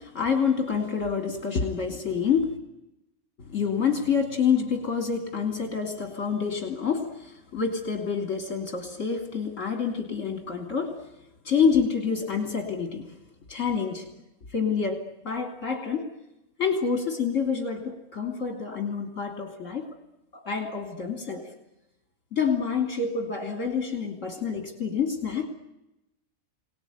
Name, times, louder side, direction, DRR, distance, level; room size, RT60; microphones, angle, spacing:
voice 1, 0.0-2.6 3.4-11.0 11.5-13.1 13.5-14.1 14.5-16.1 16.6-19.9 20.3-21.5 22.3-25.5, left 6 dB, 60° left, 5 dB, 3.3 m, -27 dB
26.0 x 19.0 x 9.5 m, 0.92 s
omnidirectional pair, 1.5 m